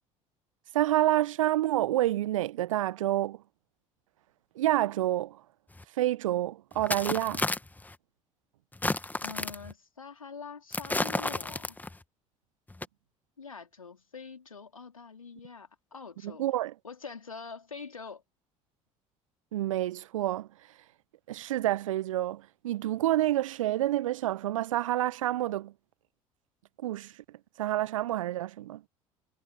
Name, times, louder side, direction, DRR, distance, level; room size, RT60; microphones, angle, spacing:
voice 1, 0.7-3.4 4.5-5.4 6.0-7.4 16.2-16.7 19.5-20.5 21.3-25.7 26.8-27.1 27.6-28.8, right 14 dB, 75° right, 1.2 m, -28 dB
sound 1, 5.8-5.9 6.7-7.9 8.7-9.7 10.7-12.0 12.7-12.8, left 2 dB, 10° left, 1.8 m, -32 dB
voice 2, 9.2-11.8 13.4-16.4 16.8-18.2, left 5 dB, 85° left, 3.0 m, -44 dB
figure-of-eight pair, 60°, 17 cm